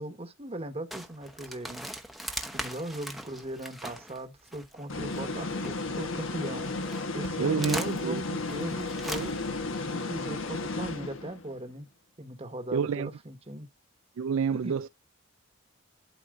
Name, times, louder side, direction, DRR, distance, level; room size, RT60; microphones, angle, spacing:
voice 1, 0.0-1.9 2.5-6.7 7.1-9.5 9.9-11.9 12.2-13.7 14.5-14.8, right 1 dB, 30° right, 1.3 m, -39 dB
sound 1, 0.9-6.1 6.6-9.6, right 1 dB, ahead, 0.9 m, -40 dB
sound 2, 4.9-11.5, left 3 dB, 65° left, 1.2 m, -33 dB
voice 2, 7.4-8.2 12.7-13.1 14.2-14.9, right 6 dB, 70° right, 0.3 m, -28 dB
12.5 x 4.2 x 2.5 m
head